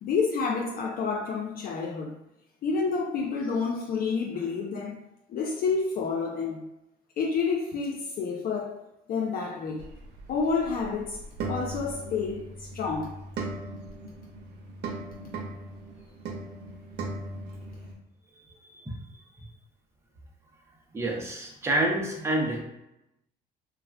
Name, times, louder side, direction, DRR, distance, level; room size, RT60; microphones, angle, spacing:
voice 1, 0.0-2.1 2.6-5.0 5.3-6.7 7.2-8.8 9.1-9.8 10.3-13.1, left 5 dB, 55° left, 0.4 m, -29 dB
sound 1, 9.8-18.0, right 2 dB, 70° right, 0.7 m, -38 dB
voice 2, 20.9-22.6, right 1 dB, 15° right, 0.7 m, -28 dB
2.3 x 2.3 x 3.3 m
supercardioid pair, 90°, 18 cm